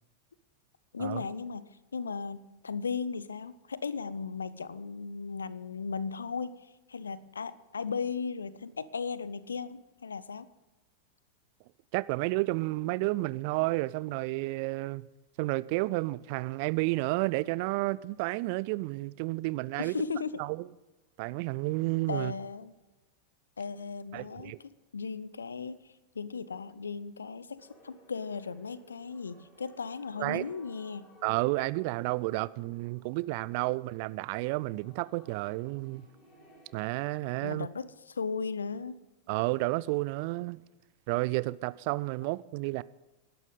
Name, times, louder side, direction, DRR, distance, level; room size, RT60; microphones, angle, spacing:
voice 1, 0.9-10.5 19.8-20.4 22.1-22.7 23.6-25.8 26.1-31.1 37.4-39.0, left 5 dB, 75° left, 0.6 m, -36 dB
voice 2, 11.9-15.1 15.4-20.0 20.4-20.6 21.2-22.3 24.1-24.6 30.2-30.4 31.2-36.1 36.7-37.7 39.3-40.6 41.1-42.8, right 21 dB, 45° right, 0.4 m, -31 dB
sound 1, 27.6-36.8, left 1 dB, 25° left, 6.1 m, -59 dB
19.0 x 11.5 x 3.9 m
figure-of-eight pair, 90°, 0 cm